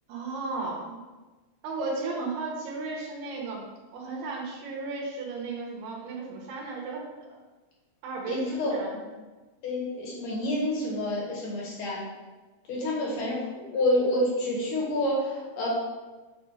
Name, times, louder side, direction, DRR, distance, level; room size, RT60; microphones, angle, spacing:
voice 1, 0.1-1.0 1.6-3.6 3.9-7.0 7.3-7.4 8.0-9.0 13.1-13.3, right 3 dB, 80° right, -2 dB, 2.9 m, -34 dB
voice 2, 8.3-8.7 9.6-12.0 12.7-13.4 13.7-15.7, left 1 dB, 60° left, -5 dB, 2.9 m, -28 dB
8.7 x 2.9 x 4.8 m, 1.2 s
omnidirectional pair, 4.6 m